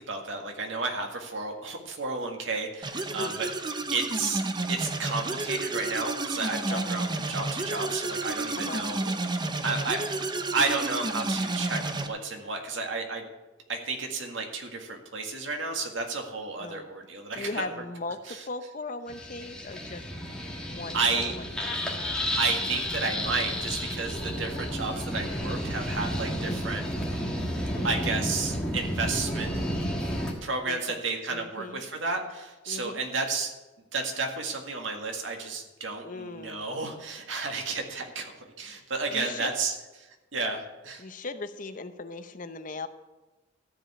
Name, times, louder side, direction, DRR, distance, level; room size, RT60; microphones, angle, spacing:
voice 1, 0.0-3.5 3.9-4.4 4.7-9.1 9.6-10.0 10.5-13.2 13.7-17.7 18.3-18.4 20.9-21.3 22.4-27.2 27.8-29.5 30.4-33.5 33.9-39.7 40.0-41.0, right 3 dB, 90° right, 3 dB, 1.9 m, -32 dB
sound 1, 2.8-12.1, right 2 dB, 25° right, 0.7 m, -31 dB
voice 2, 3.1-3.4 6.7-7.0 8.6-8.9 16.6-16.9 17.3-20.0 20.7-21.7 26.3-26.6 27.7-28.0 30.7-31.0 31.3-31.8 32.7-33.0 36.0-36.7 39.1-39.5 41.0-42.9, left 3 dB, 45° left, 9 dB, 0.7 m, -38 dB
sound 2, 19.1-30.3, equal, 5° left, 1.6 m, -31 dB
13.5 x 5.2 x 8.5 m, 1.1 s
head